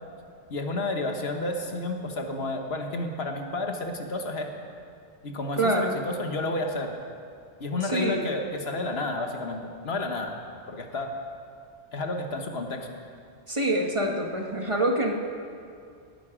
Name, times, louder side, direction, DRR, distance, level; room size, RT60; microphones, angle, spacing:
voice 1, 0.5-4.5 5.2-7.0 7.6-10.4 10.7-11.1 11.9-12.9, left 2 dB, 65° left, 4 dB, 1.3 m, -31 dB
voice 2, 5.5-6.0 7.8-8.3 13.5-15.1, right 1 dB, 30° right, 1 dB, 1.2 m, -26 dB
18.5 x 9.6 x 5.0 m, 2.4 s
omnidirectional pair, 1.2 m